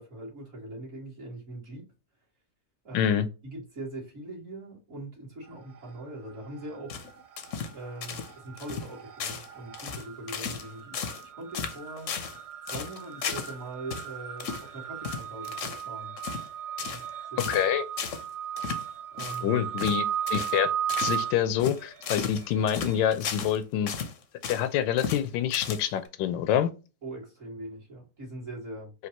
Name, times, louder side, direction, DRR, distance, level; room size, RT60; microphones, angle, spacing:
voice 1, 0.0-1.9 2.8-3.1 3.4-7.0 7.7-12.1 12.7-16.2 16.8-17.0 17.3-17.5 19.1-19.6 27.0-28.9, right 2 dB, 45° right, 2.2 m, -41 dB
voice 2, 2.9-3.3 17.5-17.8 19.4-20.0 20.3-20.7 21.0-23.9 24.5-26.7, left 10 dB, 85° left, 1.3 m, -26 dB
sound 1, 5.5-6.1 6.4-23.0, right 9 dB, 90° right, 0.5 m, -37 dB
sound 2, 6.9-7.8 8.0-8.3 8.6-8.9 9.2-9.5 9.7-10.7 10.9-11.3 11.5-12.4 12.7-13.5 13.9-14.1 14.4-14.7 15.0-15.9 16.2-16.5 16.8-17.1 17.4-17.7 18.0-18.2 18.6-18.8 19.2-19.4 19.8-20.0 20.3-20.6 20.9-21.2 21.6-23.6 23.9-24.7 25.0-25.2 25.5-26.1, left 6 dB, 55° left, 0.9 m, -35 dB
5.1 x 2.8 x 2.9 m
omnidirectional pair, 1.9 m